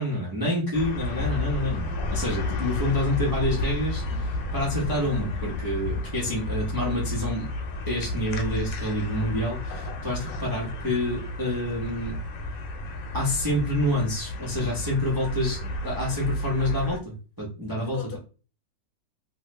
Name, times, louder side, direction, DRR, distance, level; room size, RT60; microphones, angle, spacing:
voice 1, 0.0-4.0 4.5-7.5 7.9-12.2 13.1-18.2, left 1 dB, 30° right, 0.4 m, -28 dB
sound 1, 0.7-17.0, left 2 dB, 90° left, 1.3 m, -32 dB
voice 2, 4.7-5.6 15.6-15.7 17.8-18.2, left 5 dB, 65° left, 1.2 m, -42 dB
3.1 x 2.1 x 3.2 m
omnidirectional pair, 1.9 m